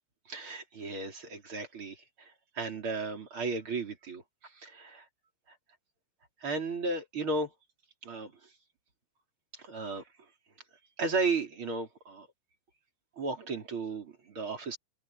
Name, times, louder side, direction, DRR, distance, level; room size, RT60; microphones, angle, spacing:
voice 1, 0.3-5.0 6.4-7.5 8.0-8.3 9.6-10.0 11.0-12.3 13.2-14.8, right 3 dB, 25° right, 4.1 m, -34 dB
omnidirectional pair, 6.0 m